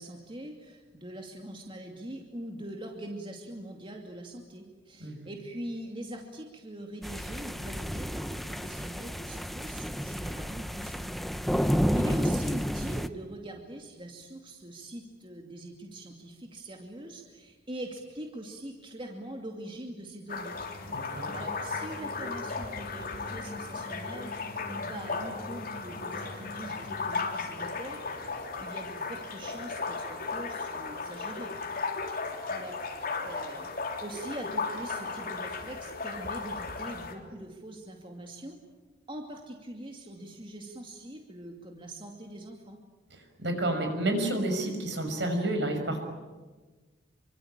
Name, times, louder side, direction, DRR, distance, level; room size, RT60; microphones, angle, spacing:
voice 1, 0.0-20.6 21.1-31.5 32.0-32.2 32.5-33.7 34.0-38.6 39.1-42.8, right 1 dB, 25° right, 2 dB, 2.5 m, -42 dB
sound 1, 7.0-13.1, equal, ahead, 0.8 m, -31 dB
sound 2, 20.3-37.1, left 4 dB, 50° left, 3.6 m, -36 dB
sound 3, 20.4-27.8, equal, 30° left, 5.1 m, -46 dB
voice 2, 20.9-21.3 27.5-27.7 43.1-46.0, right 1 dB, 65° right, 5 dB, 6.1 m, -30 dB
27.0 x 24.5 x 8.8 m, 1.3 s
head